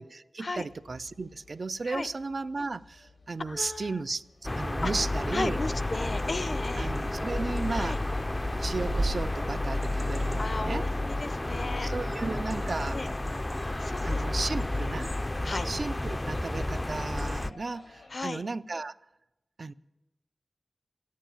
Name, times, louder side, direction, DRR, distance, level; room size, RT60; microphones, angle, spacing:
voice 1, 0.0-4.2 4.6-5.6 6.8-8.0 8.6-10.9 11.8-13.0 14.0-15.1 15.6-19.0 19.6-19.7, right 3 dB, 65° right, 0.4 m, -34 dB
sound 1, 0.5-18.4, left 3 dB, 90° left, 1.8 m, -56 dB
sound 2, 3.4-3.8 5.5-5.6 6.6-6.7 7.0-7.6 8.2-10.1, right 3 dB, 80° right, 1.6 m, -37 dB
voice 2, 3.5-4.0 4.8-4.9 5.3-7.0 7.7-8.0 10.4-11.9 12.9-13.1 13.8-14.2 14.6-14.9 15.4-15.7 18.1-18.4, left 3 dB, 60° left, 0.7 m, -35 dB
sound 3, 4.4-17.5, left 2 dB, 25° left, 0.4 m, -31 dB
15.0 x 9.3 x 8.9 m
wide cardioid pair, 70°, 0 cm